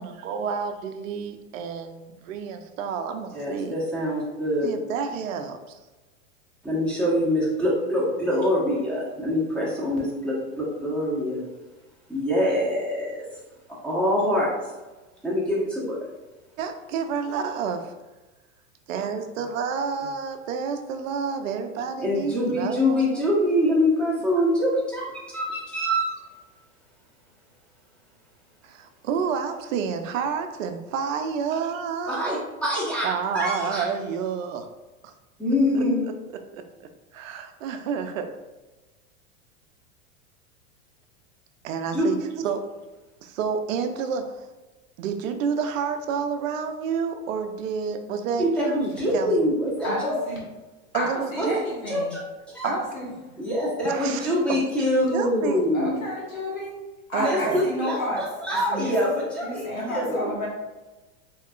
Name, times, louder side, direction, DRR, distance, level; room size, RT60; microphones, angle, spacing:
voice 1, 0.0-3.8 4.6-5.8 16.6-17.9 18.9-23.2 28.6-32.4 33.0-34.7 35.0-35.1 35.7-38.3 41.6-42.6 43.2-44.5 45.0-49.4 50.9-51.6 52.6-52.8 53.8-54.9 55.1-55.7 56.3-56.4 57.1-57.6, right 6 dB, 70° right, 7 dB, 0.6 m, -30 dB
voice 2, 3.3-4.7 6.6-11.4 12.1-13.2 13.7-14.5 15.2-16.0 22.0-26.2 32.1-33.9 35.4-36.1 41.9-42.1 48.4-50.2 51.4-51.5 51.9-52.2 52.5-52.7 53.4-56.0 57.2-60.3, left 1 dB, ahead, -7 dB, 1.0 m, -25 dB
voice 3, 49.8-50.4 50.9-52.2 52.6-53.1 55.7-56.7 57.1-58.2 58.7-58.9 59.4-60.5, left 1 dB, 85° left, -3 dB, 1.4 m, -30 dB
3.6 x 2.8 x 2.4 m, 1.2 s
hypercardioid pair, 115°, 40 cm